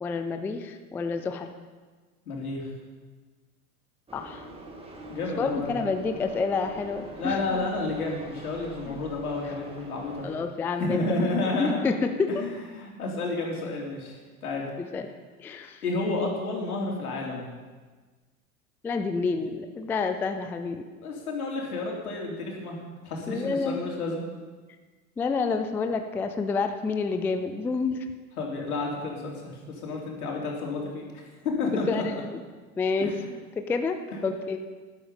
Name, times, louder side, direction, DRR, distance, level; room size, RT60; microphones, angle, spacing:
voice 1, 0.0-1.5 4.1-4.5 5.4-7.4 8.9-9.0 10.2-11.0 11.4-12.4 14.8-15.1 15.4-15.8 18.8-20.8 23.3-23.9 25.2-28.0 31.9-32.4 32.8-34.0 34.2-34.6, left 4 dB, 5° left, 7 dB, 0.3 m, -29 dB
voice 2, 2.3-2.7 5.1-5.8 7.1-10.4 10.8-11.8 12.3-14.7 15.8-17.5 21.0-22.8 23.0-24.3 28.4-31.1 31.6-32.2 33.0-33.1, left 2 dB, 80° left, -1 dB, 3.5 m, -31 dB
sound 1, 4.1-10.4, right 1 dB, 15° right, 2.0 m, -44 dB
12.5 x 11.5 x 5.3 m, 1.4 s
hypercardioid pair, 95°, 44 cm